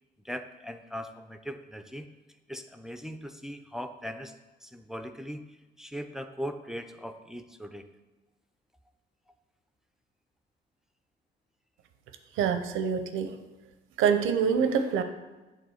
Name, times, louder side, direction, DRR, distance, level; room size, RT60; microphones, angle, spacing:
voice 1, 0.2-2.1 2.5-4.3 4.6-5.4 5.8-7.9, equal, ahead, 7 dB, 0.5 m, -39 dB
voice 2, 12.4-13.4 14.0-15.0, right 7 dB, 90° right, 8 dB, 0.7 m, -25 dB
8.3 x 3.6 x 6.3 m, 1.1 s
cardioid pair, 90°, 20 cm